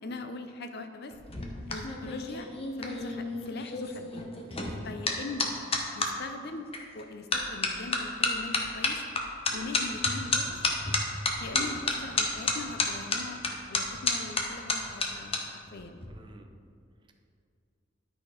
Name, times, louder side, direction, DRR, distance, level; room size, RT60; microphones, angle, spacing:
voice 1, 0.0-1.1 1.7-2.5 2.8-4.2 4.8-5.5 5.9-6.7 6.9-9.0 9.5-10.7 11.4-16.0, left 3 dB, 60° left, 7 dB, 0.6 m, -41 dB
sound 1, 1.1-6.1 6.7-7.0 7.3-15.4 15.7-16.1, left 3 dB, 30° left, 0.9 m, -30 dB
voice 2, 4.4-4.9 9.5-9.7 11.5-11.7 16.1-16.5, right 2 dB, 25° right, 4 dB, 0.6 m, -49 dB
11.5 x 4.3 x 5.0 m, 2.4 s
head